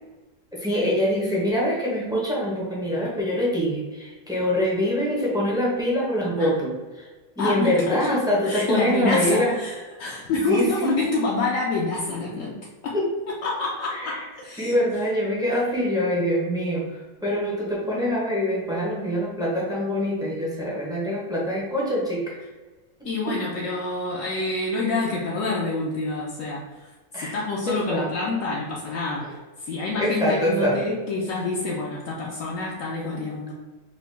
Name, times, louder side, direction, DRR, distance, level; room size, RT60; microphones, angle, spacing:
voice 1, 0.5-7.1 7.4-9.5 10.3-11.0 12.9-13.1 13.9-14.2 14.6-22.4 23.3-23.4 27.1-27.4 27.7-28.1 30.0-30.8, equal, 5° right, -5 dB, 0.5 m, -24 dB
voice 2, 7.4-8.1 8.4-13.0 13.4-14.7 23.0-26.9 27.1-33.5, left 3 dB, 70° left, -4 dB, 0.9 m, -27 dB
3.9 x 2.3 x 3.2 m, 1.3 s
omnidirectional pair, 1.6 m